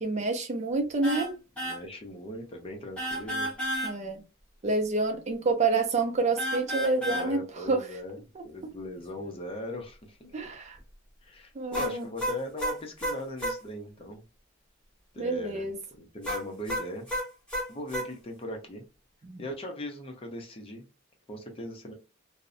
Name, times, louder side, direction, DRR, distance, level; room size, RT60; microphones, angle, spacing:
voice 1, 0.0-1.3 3.8-4.2 4.6-7.4 7.7-7.8 8.4-8.5 10.3-10.8 11.6-12.0 15.2-15.7 19.2-19.4, right 3 dB, 35° right, 0.4 m, -28 dB
sound 1, 1.0-1.3 1.6-1.8 3.0-3.9 6.4-7.3 11.7-13.6 16.2-18.1, equal, 5° left, 1.1 m, -31 dB
voice 2, 1.6-3.5 7.0-8.2 8.4-10.4 11.2-14.2 15.1-17.1 17.7-18.8 19.4-20.8 21.3-21.9, left 1 dB, 30° left, 0.5 m, -39 dB
2.5 x 2.0 x 2.5 m
head